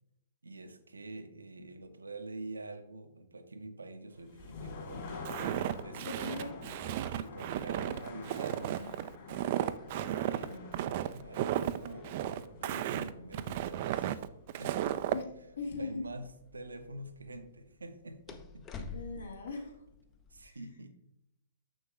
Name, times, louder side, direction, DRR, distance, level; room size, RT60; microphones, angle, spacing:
voice 1, 0.4-5.2 5.8-6.4 7.1-9.0 9.9-14.2 14.6-15.2 15.8-18.9 20.3-21.0, right 2 dB, 75° right, 9 dB, 0.7 m, -46 dB
sound 1, 4.1-16.0, left 4 dB, 40° left, 2.7 m, -48 dB
Walk footsteps, 5.3-15.2, right 12 dB, 40° right, 0.3 m, -34 dB
voice 2, 6.0-6.5 15.1-15.2 15.6-16.0 18.9-19.8 20.4-20.6, left 4 dB, 65° left, 1 dB, 1.7 m, -39 dB
sound 2, 6.5-20.5, left 5 dB, 20° left, 0.6 m, -54 dB
7.0 x 6.3 x 3.3 m, 0.79 s
figure-of-eight pair, 115°, 0 cm